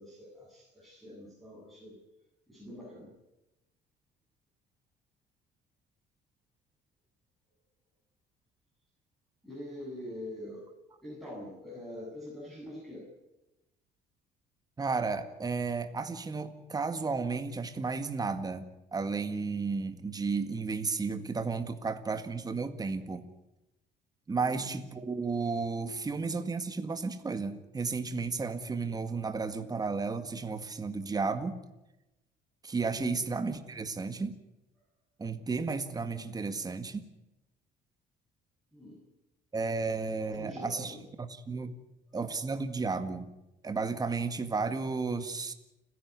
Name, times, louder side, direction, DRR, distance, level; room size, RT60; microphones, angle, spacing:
voice 1, 0.0-2.0 2.5-3.1 9.4-10.7 11.0-13.0 24.3-24.7 33.0-33.2 38.7-39.0 40.2-41.0, left 1 dB, ahead, -5 dB, 7.8 m, -44 dB
voice 2, 14.8-23.3 24.3-31.6 32.6-34.4 35.2-37.1 39.5-41.7 42.1-43.3 43.6-45.5, right 4 dB, 20° right, 9 dB, 1.8 m, -33 dB
30.0 x 11.0 x 9.6 m, 0.95 s
cardioid pair, 110°, 17 cm